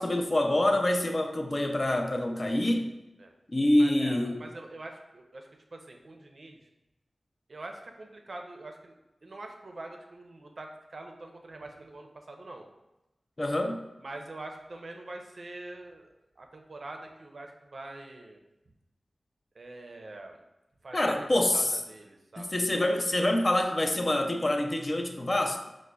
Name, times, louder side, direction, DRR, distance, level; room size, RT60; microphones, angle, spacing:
voice 1, 0.0-2.9 3.5-4.4 13.4-13.8 20.9-21.7 22.4-25.7, left 1 dB, 45° left, 4 dB, 0.4 m, -26 dB
voice 2, 3.8-6.6 7.5-9.0 9.2-12.7 14.0-16.1 16.4-18.4 19.5-20.4 20.8-22.5, right 2 dB, 65° right, 3 dB, 0.4 m, -44 dB
4.9 x 2.0 x 2.2 m, 0.96 s
cardioid pair, 40°, 0 cm